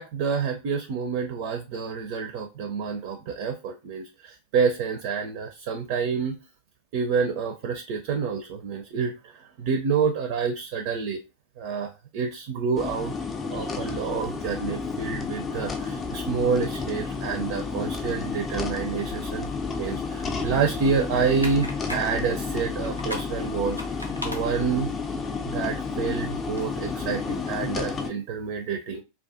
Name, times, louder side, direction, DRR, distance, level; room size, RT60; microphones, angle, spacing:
voice 1, 0.0-6.4 6.9-11.2 11.6-13.1 13.5-19.5 19.8-24.0 24.2-24.9 25.5-29.0, right 5 dB, 45° right, 5 dB, 0.4 m, -28 dB
sound 1, 12.8-28.1, left 4 dB, 20° left, 0.4 m, -31 dB
sound 2, 21.2-26.7, left 1 dB, 90° left, 0.6 m, -41 dB
2.3 x 2.3 x 2.4 m, 0.28 s
figure-of-eight pair, 90°, 0 cm